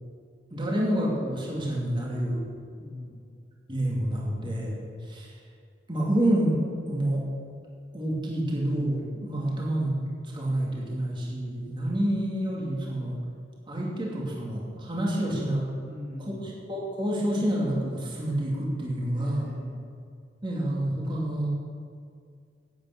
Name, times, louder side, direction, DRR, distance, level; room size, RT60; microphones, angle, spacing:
voice 1, 0.5-2.4 3.7-5.4 5.9-6.6 6.9-7.2 7.9-9.9 10.3-13.2 13.7-15.7 16.4-19.5 20.4-21.5, right 1 dB, 30° right, -3 dB, 2.6 m, -28 dB
voice 2, 2.8-3.3 15.1-15.4 15.9-16.5 19.1-19.9, left 2 dB, 60° right, -5 dB, 3.5 m, -42 dB
10.5 x 8.9 x 8.5 m, 2.3 s
head